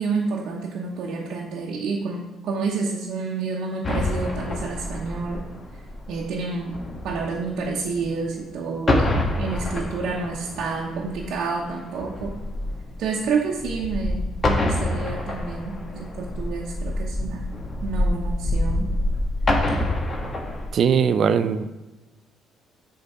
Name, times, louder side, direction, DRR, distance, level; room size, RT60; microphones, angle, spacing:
voice 1, 0.0-5.4 6.1-12.3 13.0-17.5 17.8-18.9, right 4 dB, 70° right, -3 dB, 1.0 m, -29 dB
sound 1, 3.8-8.5 8.8-20.7, left 1 dB, 35° left, 1.4 m, -27 dB
voice 2, 20.7-21.7, right 7 dB, 55° right, 12 dB, 0.5 m, -20 dB
7.9 x 3.8 x 5.6 m, 1.1 s
cardioid pair, 90°, 0 cm